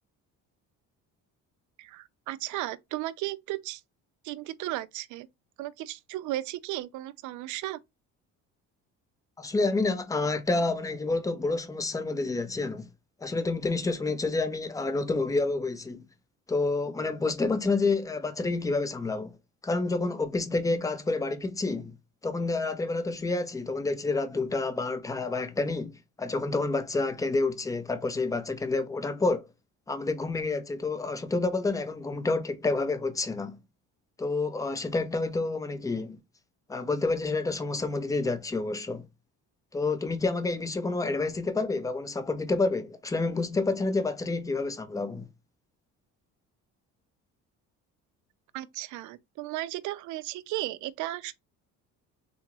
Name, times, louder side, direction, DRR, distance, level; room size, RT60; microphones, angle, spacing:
voice 1, 1.8-3.8 4.2-5.3 5.6-7.8 48.5-51.3, right 16 dB, 70° right, 0.5 m, -35 dB
voice 2, 9.4-12.8 13.2-16.0 16.5-19.4 19.6-22.0 22.2-29.5 29.9-33.6 34.2-36.2 36.7-39.1 39.7-45.3, left 3 dB, 10° left, 0.5 m, -29 dB
3.7 x 2.3 x 2.9 m
cardioid pair, 130°, 31 cm